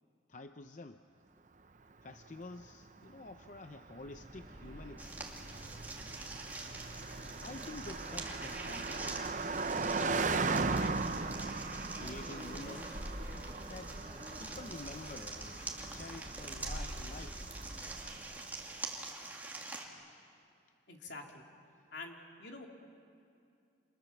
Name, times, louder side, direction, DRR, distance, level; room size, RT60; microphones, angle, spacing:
voice 1, 0.3-1.0 2.0-5.5 6.9-11.1 11.9-13.1 13.7-14.0 14.4-15.6 15.9-17.5, left 2 dB, 45° left, 7 dB, 0.6 m, -49 dB
Car passing by, 2.1-18.6, right 4 dB, 45° right, 0.7 m, -39 dB
Subway metro underground, 3.9-18.3, equal, 25° right, 5.9 m, -48 dB
sound 1, 5.0-19.9, right 3 dB, 10° right, 2.5 m, -46 dB
voice 2, 20.9-21.4 21.9-22.7, left 3 dB, 75° left, 1 dB, 3.0 m, -47 dB
29.5 x 27.5 x 7.2 m, 2.5 s
head